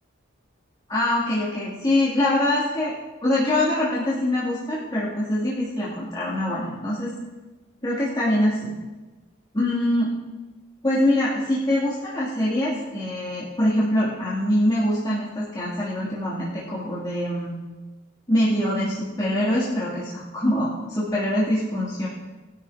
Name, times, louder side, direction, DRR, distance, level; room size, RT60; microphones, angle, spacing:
voice 1, 0.9-2.9 3.2-7.1 7.8-8.7 9.5-10.1 10.8-17.5 18.3-22.1, left 1 dB, 25° left, -11 dB, 3.0 m, -24 dB
21.0 x 12.5 x 2.9 m, 1.2 s
head